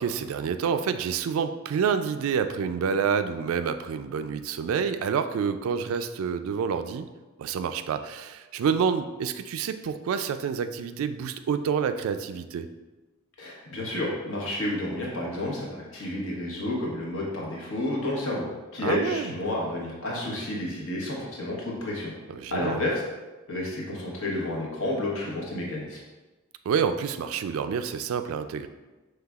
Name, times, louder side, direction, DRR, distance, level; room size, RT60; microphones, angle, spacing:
voice 1, 0.0-7.1 7.4-12.7 18.8-19.3 22.3-22.8 26.7-28.7, right 6 dB, 80° right, 10 dB, 0.3 m, -28 dB
voice 2, 13.4-18.5 18.7-22.1 22.5-23.0 23.5-26.0, left 1 dB, 75° left, -3 dB, 1.0 m, -30 dB
5.6 x 3.3 x 2.3 m, 1.2 s
head